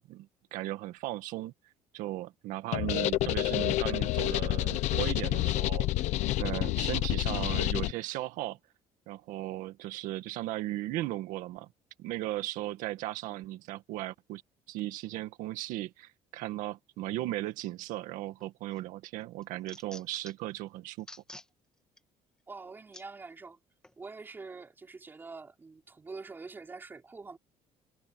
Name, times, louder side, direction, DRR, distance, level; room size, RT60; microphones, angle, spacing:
voice 1, 0.1-1.5 1.9-5.9 6.4-8.6 9.1-11.7 12.0-14.4 14.7-21.1, right 16 dB, 85° right, 2.0 m, -36 dB
sound 1, 2.7-7.9, left 16 dB, 60° left, 0.9 m, -29 dB
sound 2, 18.4-18.8 19.2-20.5 21.0-21.5 22.0-22.1 22.9-23.1 23.8-24.0, left 1 dB, 5° left, 2.0 m, -49 dB
voice 2, 22.5-23.6 24.0-27.4, right 4 dB, 15° right, 4.5 m, -45 dB
cardioid pair, 175°, 13 cm